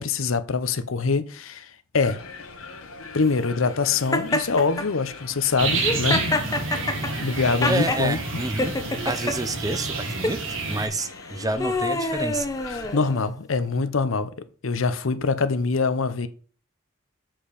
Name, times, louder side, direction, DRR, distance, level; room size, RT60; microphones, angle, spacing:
voice 1, 0.0-2.2 3.1-6.4 6.8-6.9 7.2-8.4 12.9-14.3 14.6-16.3, left 4 dB, 70° left, 0.7 m, -24 dB
sound 1, 2.0-13.0, left 3 dB, 85° left, 1.4 m, -41 dB
Laughter, 4.1-4.9 5.7-8.0 8.6-9.4 10.1-10.4 11.1-13.3, left 2 dB, 15° left, 0.7 m, -27 dB
sound 2, 5.6-10.9, right 4 dB, 65° right, 1.6 m, -29 dB
voice 2, 7.7-8.8 9.0-10.4 10.6-12.5, right 2 dB, 15° right, 0.6 m, -28 dB
7.4 x 4.5 x 5.1 m
head